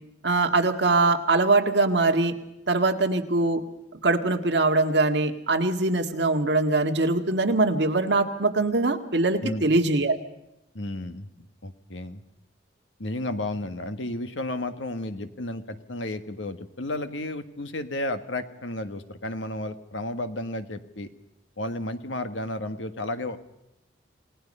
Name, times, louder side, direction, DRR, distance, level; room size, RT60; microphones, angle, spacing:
voice 1, 0.2-2.3 2.7-3.6 4.0-10.2, right 3 dB, 60° right, 5 dB, 1.9 m, -22 dB
voice 2, 10.7-11.3 11.6-12.2 13.0-21.1 21.6-23.4, left 1 dB, 85° left, 9 dB, 1.6 m, -32 dB
28.5 x 18.5 x 5.5 m, 0.89 s
head